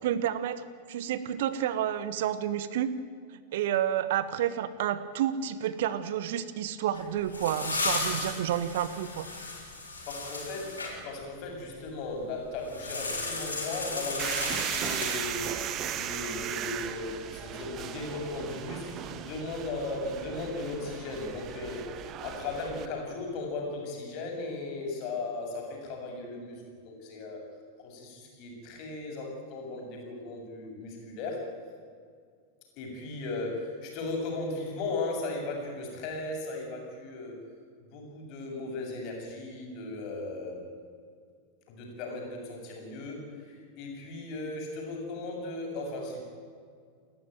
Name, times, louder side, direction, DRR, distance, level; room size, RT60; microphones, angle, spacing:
voice 1, 0.0-3.0 3.5-9.3, right 10 dB, 55° right, 15 dB, 1.2 m, -30 dB
sound 1, 6.9-10.9 12.7-15.6, left 3 dB, 75° left, 7.2 m, -35 dB
voice 2, 10.1-27.4 27.8-31.5 32.8-37.4 37.8-40.6 41.7-46.2, left 2 dB, 45° left, 1 dB, 7.6 m, -37 dB
sound 2, 14.2-22.9, right 10 dB, 35° right, 1.6 m, -36 dB
30.0 x 14.0 x 9.3 m, 2.1 s
figure-of-eight pair, 90°, 0 cm